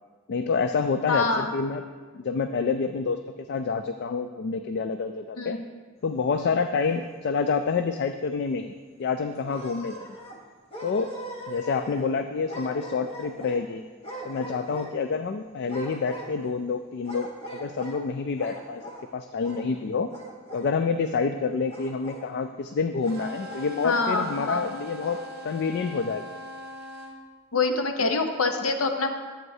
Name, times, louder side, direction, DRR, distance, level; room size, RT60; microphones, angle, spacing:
voice 1, 0.3-1.8 2.1-5.6 6.0-8.7 9.0-10.1 10.8-11.2 11.5-13.8 14.2-18.8 19.1-20.1 20.5-25.2 25.4-26.2, left 5 dB, 50° left, 8 dB, 0.3 m, -28 dB
voice 2, 1.1-1.5 5.4-5.6 23.8-24.7 27.5-29.1, left 3 dB, 75° left, 6 dB, 0.8 m, -25 dB
sound 1, 6.6-7.4 7.8-7.9 8.3-8.4 9.3-10.4 10.7-12.1 12.5-13.6 14.0-15.1 15.6-16.6 17.0-18.0 18.3-19.1 19.4-19.8 20.1-20.7 21.7-22.3 23.0-23.7 24.2-24.4 24.9-25.3, right 1 dB, 30° left, 1.0 m, -41 dB
sound 2, 23.0-27.2, equal, 50° right, 0.8 m, -41 dB
11.0 x 8.0 x 2.7 m, 1.5 s
head